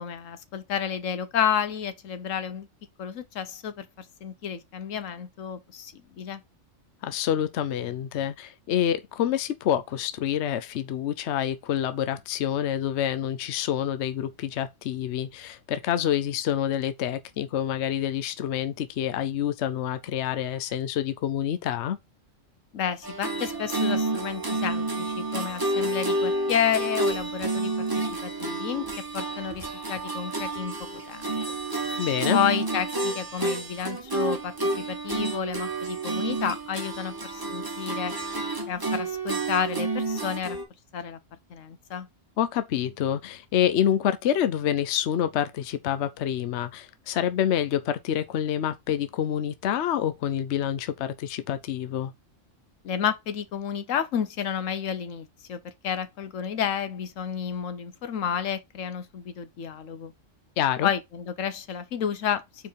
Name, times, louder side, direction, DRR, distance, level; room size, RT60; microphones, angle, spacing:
voice 1, 0.0-2.7 3.0-6.4 22.7-28.9 29.1-30.7 31.1-31.6 32.3-38.1 38.7-40.6 40.9-41.2 41.5-42.1 52.8-60.1 60.8-62.4, left 8 dB, 80° left, 1.2 m, -31 dB
voice 2, 7.0-22.0 32.0-32.4 42.4-52.1 60.6-60.9, left 10 dB, 65° left, 0.9 m, -27 dB
sound 1, 23.0-40.6, right 2 dB, 20° right, 0.9 m, -30 dB
4.8 x 4.7 x 5.1 m
omnidirectional pair, 1.3 m